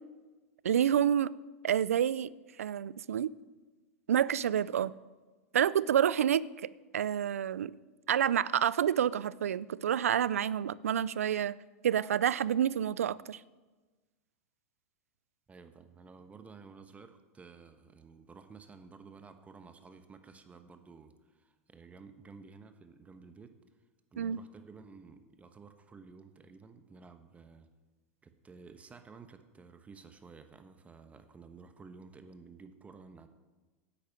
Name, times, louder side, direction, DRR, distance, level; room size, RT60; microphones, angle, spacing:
voice 1, 0.6-1.3 1.6-2.3 2.6-3.3 4.1-4.9 5.5-7.7 8.1-11.5 11.8-13.4 24.2-24.4, right 9 dB, 90° right, 20 dB, 0.4 m, -28 dB
voice 2, 15.5-23.5 24.1-27.7 28.2-33.3, right 4 dB, 20° right, 8 dB, 1.1 m, -53 dB
10.5 x 8.7 x 7.4 m, 1.3 s
hypercardioid pair, 105°, 7 cm